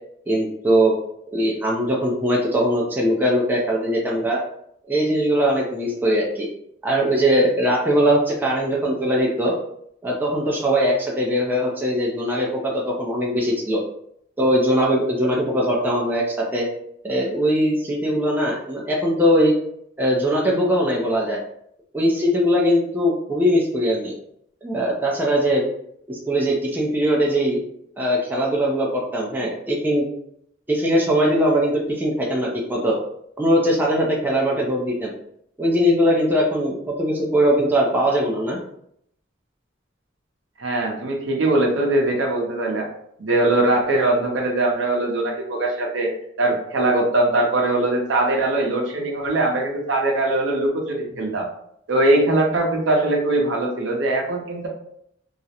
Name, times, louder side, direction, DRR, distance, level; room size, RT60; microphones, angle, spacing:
voice 1, 0.3-0.9 1.3-4.4 4.9-6.5 6.8-9.5 10.0-13.8 14.4-16.7 17.0-19.5 20.0-21.4 21.9-24.1 24.6-25.6 26.1-27.6 28.0-30.1 30.7-33.0 33.4-35.1 35.6-38.6, equal, 10° right, -3 dB, 0.4 m, -20 dB
voice 2, 40.6-42.9 43.2-46.1 46.4-51.5 51.9-54.7, right 2 dB, 70° right, 0 dB, 0.6 m, -21 dB
2.4 x 2.0 x 2.8 m, 0.71 s
head